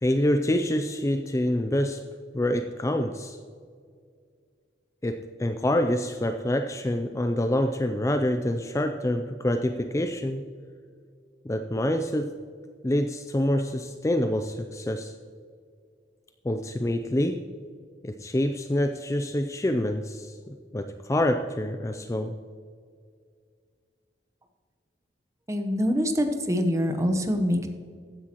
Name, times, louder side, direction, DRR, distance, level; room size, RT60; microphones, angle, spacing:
voice 1, 0.0-2.0 2.3-3.4 5.0-10.5 11.4-12.3 12.8-15.1 16.4-17.4 18.0-22.3, left 1 dB, 15° left, 7 dB, 0.4 m, -26 dB
voice 2, 25.5-27.7, equal, 15° right, 6 dB, 0.9 m, -25 dB
14.5 x 10.0 x 3.0 m, 2.1 s
head